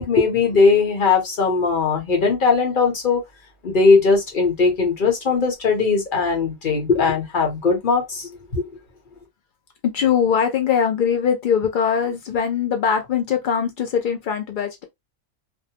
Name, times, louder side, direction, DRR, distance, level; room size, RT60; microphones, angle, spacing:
voice 1, 0.0-3.2 3.6-8.7, left 4 dB, 45° left, 0.9 m, -19 dB
voice 2, 9.9-14.8, left 7 dB, 90° left, 0.4 m, -21 dB
2.6 x 2.1 x 2.7 m
omnidirectional pair, 1.4 m